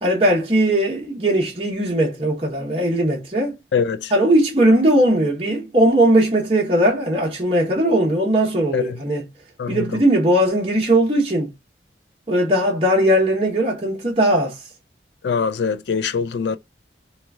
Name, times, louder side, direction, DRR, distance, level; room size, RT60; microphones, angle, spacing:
voice 1, 0.0-3.5 4.1-9.3 9.7-11.5 12.3-14.5, right 1 dB, 35° right, 1.0 m, -18 dB
voice 2, 3.7-4.1 8.7-8.8 9.6-9.8 15.2-16.6, left 6 dB, 75° left, 0.4 m, -22 dB
3.0 x 2.4 x 3.5 m
head